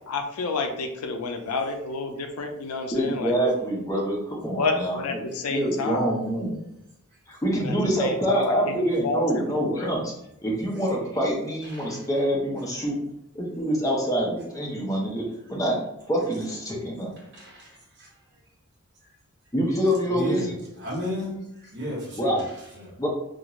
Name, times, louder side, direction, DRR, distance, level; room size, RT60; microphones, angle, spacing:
voice 1, 0.1-3.3 4.6-6.2 7.6-9.9, left 4 dB, 75° left, 4 dB, 0.4 m, -30 dB
voice 2, 2.9-5.2 5.5-6.5 7.3-10.1 10.4-13.0 13.3-15.8 16.1-17.1 19.5-20.6 22.2-22.4 23.0-23.1, equal, 15° left, -3 dB, 0.7 m, -26 dB
voice 3, 17.3-18.1 20.1-20.4 20.8-22.3 22.8-22.9, left 1 dB, 50° right, -3 dB, 1.0 m, -33 dB
2.5 x 2.4 x 3.0 m, 0.82 s
head